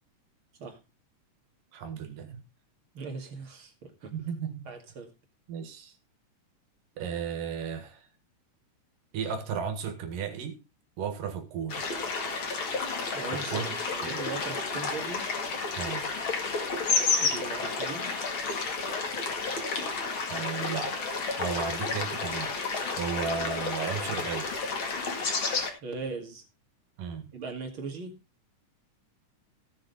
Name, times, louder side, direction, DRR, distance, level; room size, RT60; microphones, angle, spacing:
voice 1, 1.7-2.4 4.1-4.7 5.5-5.9 7.0-8.1 9.1-10.6 11.0-11.8 13.3-13.7 14.1-14.3 15.8-16.1 20.2-20.9 21.4-22.5 23.0-24.6 27.0-27.3, right 6 dB, 80° right, 3.4 m, -34 dB
voice 2, 2.9-4.1 4.7-5.1 13.1-15.3 17.2-18.1 25.8-26.4 27.3-28.2, right 4 dB, 45° right, 2.6 m, -39 dB
sound 1, 11.7-25.7, left 4 dB, 40° left, 2.5 m, -31 dB
16.5 x 6.7 x 4.0 m
omnidirectional pair, 3.8 m